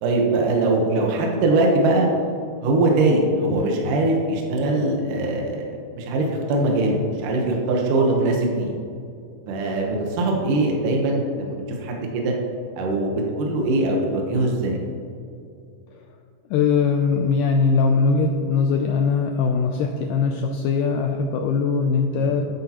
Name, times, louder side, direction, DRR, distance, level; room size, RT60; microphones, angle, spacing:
voice 1, 0.0-2.1 2.6-8.8 9.5-12.3 12.8-14.8 22.2-22.3, right 2 dB, 65° right, 0 dB, 2.5 m, -22 dB
voice 2, 16.5-22.5, left 5 dB, 80° left, 3 dB, 1.9 m, -21 dB
12.5 x 10.5 x 3.0 m, 2.4 s
omnidirectional pair, 4.3 m